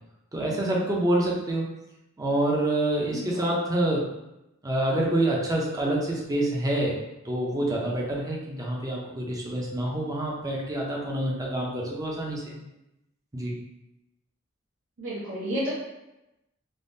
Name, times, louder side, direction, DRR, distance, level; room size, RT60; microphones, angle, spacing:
voice 1, 0.3-1.6 2.2-4.1 4.6-6.9 7.2-12.6 13.3-13.5, right 1 dB, 20° right, -3 dB, 0.5 m, -27 dB
voice 2, 3.1-3.5 15.0-15.7, equal, 70° right, -8 dB, 0.8 m, -31 dB
3.4 x 2.1 x 2.6 m, 0.91 s
head